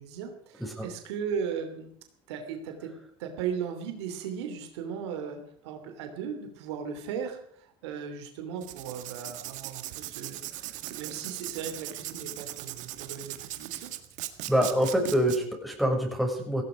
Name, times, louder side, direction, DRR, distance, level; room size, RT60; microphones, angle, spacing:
voice 1, 0.0-1.9 2.3-2.9 3.2-10.4 10.8-13.9, right 7 dB, 85° right, 6 dB, 3.0 m, -37 dB
Writing, 8.6-15.4, right 15 dB, 65° right, 1.7 m, -39 dB
voice 2, 14.5-16.6, equal, ahead, 1 dB, 6.6 m, -25 dB
17.0 x 16.5 x 5.1 m, 0.64 s
supercardioid pair, 85°, 14 cm